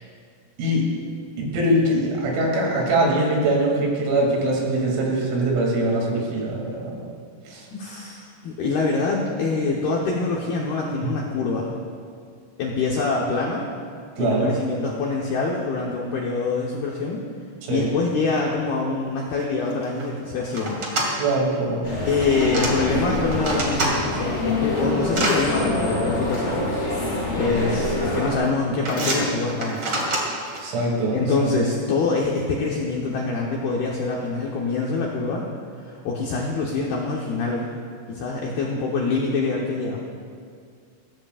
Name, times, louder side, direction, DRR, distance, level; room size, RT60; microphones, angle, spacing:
voice 1, 1.4-7.1 7.5-7.7 11.0-11.1 14.2-14.5 17.6-18.0 21.2-21.9 30.6-31.6, right 1 dB, 80° right, -2 dB, 5.4 m, -23 dB
voice 2, 7.7-11.7 12.6-13.7 14.2-17.3 17.7-20.9 22.0-26.7 27.3-29.9 31.1-35.5 35.8-37.7 38.1-40.0, left 3 dB, 75° left, -3 dB, 2.3 m, -25 dB
sound 1, 19.4-19.5 19.7-20.0 20.5-21.1 22.0-22.7 23.1-23.9 24.4-25.4 26.3-26.4 27.4-27.8 28.1-28.4 28.8-30.6, right 2 dB, 45° right, 1.9 m, -27 dB
sound 2, 21.8-28.4, left 1 dB, 25° left, 4.0 m, -26 dB
21.0 x 16.0 x 2.5 m, 2.1 s
omnidirectional pair, 6.0 m